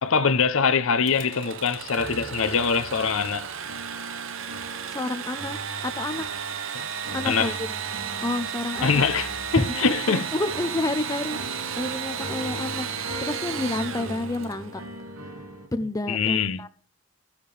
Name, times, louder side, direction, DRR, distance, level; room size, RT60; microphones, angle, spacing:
voice 1, 0.0-3.5 7.2-7.5 8.8-10.2 16.1-16.6, left 5 dB, 60° left, 0.6 m, -23 dB
Engine / Sawing, 1.0-14.7, right 8 dB, 60° right, 0.8 m, -34 dB
sound 1, 1.9-15.7, right 1 dB, 75° right, 2.2 m, -40 dB
voice 2, 4.9-5.6 6.0-6.2 7.1-7.8 8.2-9.0 9.6-14.8 15.4-15.5 15.7-16.7, left 2 dB, 15° left, 0.5 m, -29 dB
15.0 x 7.2 x 3.3 m
head